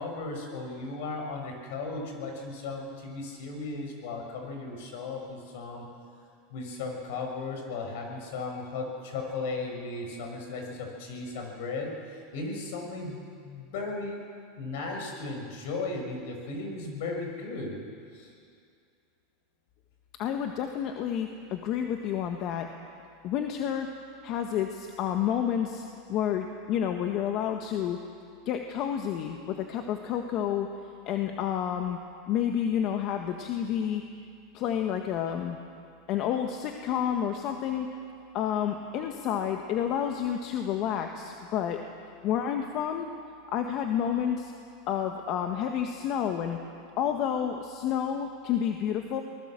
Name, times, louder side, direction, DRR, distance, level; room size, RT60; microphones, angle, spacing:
voice 1, 0.0-5.8 6.5-13.1 13.4-14.2 14.6-17.8 18.1-18.3, left 3 dB, 70° left, 2 dB, 6.1 m, -36 dB
voice 2, 20.2-22.7 23.2-23.9 24.2-28.0 28.4-30.7 31.1-32.0 32.3-34.0 34.5-35.6 36.1-37.9 38.3-41.8 42.2-43.1 43.5-44.5 44.9-46.6 47.0-49.2, left 9 dB, 50° left, 4 dB, 1.6 m, -29 dB
24.5 x 20.0 x 7.6 m, 2.4 s
supercardioid pair, 125°, 0 cm